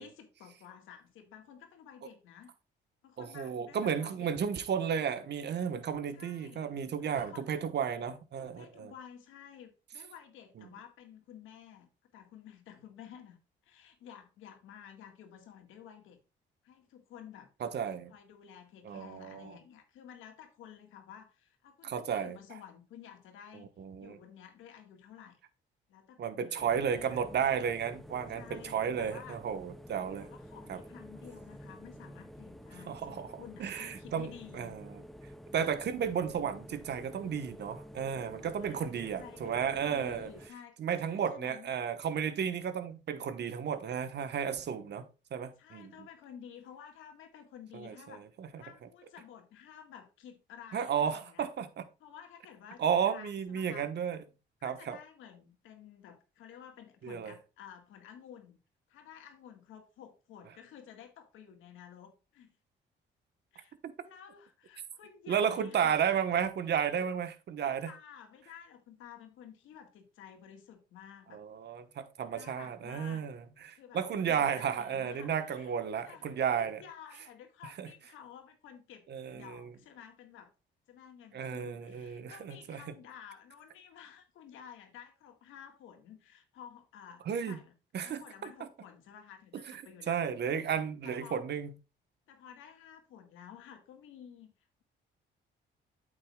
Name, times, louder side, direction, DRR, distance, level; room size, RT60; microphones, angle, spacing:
voice 1, 0.0-2.5 3.0-4.3 6.1-6.7 7.0-7.5 8.4-13.4 13.6-16.2 16.6-17.5 18.1-23.7 24.0-25.4 25.9-27.2 28.3-29.4 30.2-34.8 38.6-41.7 45.6-48.3 48.6-51.4 52.0-53.9 54.6-58.6 58.9-62.6 63.5-63.7 64.0-65.9 66.7-67.1 67.6-71.4 72.3-73.3 73.7-75.7 76.0-79.0 79.3-80.5 80.9-87.7 88.0-90.3 91.0-91.4 92.3-94.5, left 8 dB, 85° left, 1.8 m, -52 dB
voice 2, 3.2-8.9 10.6-10.7 17.6-18.1 18.8-19.6 21.8-22.4 23.5-24.2 26.2-30.3 30.7-30.8 32.9-34.9 35.5-40.3 40.8-46.1 47.7-48.6 50.7-51.8 52.8-54.2 54.6-55.0 57.0-57.3 63.8-63.9 65.3-67.9 71.3-76.8 77.8-77.9 79.1-79.7 81.3-82.9 87.3-87.6 87.9-88.7 89.7-91.7, right 7 dB, 60° right, 1.2 m, -33 dB
sound 1, 26.6-40.5, equal, ahead, 0.7 m, -50 dB
8.6 x 7.6 x 2.4 m
cardioid pair, 90°, 20 cm